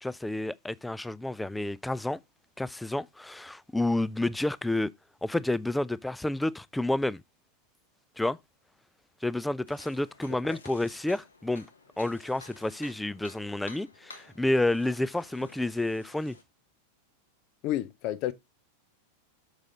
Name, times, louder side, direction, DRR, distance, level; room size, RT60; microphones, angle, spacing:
voice 1, 0.0-2.2 2.6-4.9 5.2-7.2 8.2-8.4 9.2-11.7 12.0-16.4, left 2 dB, 5° left, 0.3 m, -30 dB
sound 1, 9.7-16.4, left 3 dB, 75° left, 1.2 m, -52 dB
voice 2, 17.6-18.3, left 13 dB, 40° left, 0.7 m, -31 dB
6.5 x 6.4 x 3.7 m
figure-of-eight pair, 90°, 0 cm